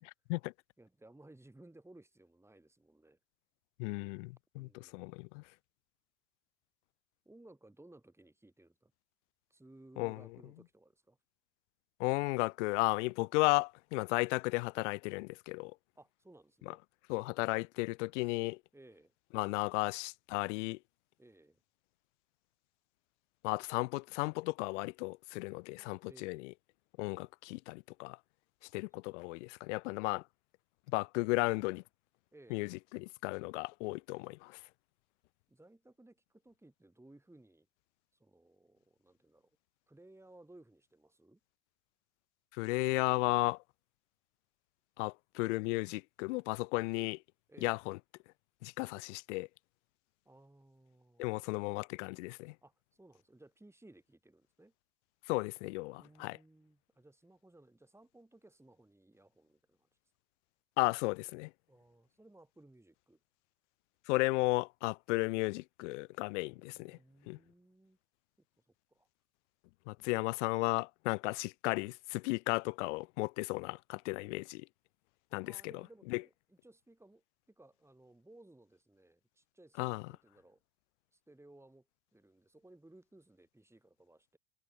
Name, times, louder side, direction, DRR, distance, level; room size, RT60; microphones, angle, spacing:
voice 1, 0.0-0.5 3.8-5.4 10.0-10.2 12.0-15.7 17.1-18.6 19.3-20.8 23.4-26.5 27.0-28.2 28.7-30.2 30.9-31.8 32.5-34.6 42.6-43.6 45.0-47.2 47.6-48.0 48.6-49.5 51.2-52.5 55.3-56.4 60.8-61.5 64.1-67.0 67.3-67.4 69.9-74.6 75.3-75.6 76.1-76.2 79.8-80.0, left 24 dB, 60° left, 0.6 m, -34 dB
voice 2, 0.8-3.2 4.5-5.1 7.3-8.9 9.5-11.2 16.0-16.8 18.7-19.1 21.2-21.6 26.0-26.5 32.3-32.7 35.5-37.7 38.1-39.5 39.9-41.4 47.5-47.8 50.3-51.2 52.6-54.7 56.0-59.9 61.7-63.2 66.4-68.0 68.9-69.1 75.4-80.6 81.1-81.9 82.1-84.4, right 2 dB, 5° right, 5.3 m, -60 dB
hypercardioid pair, 75°, 40 cm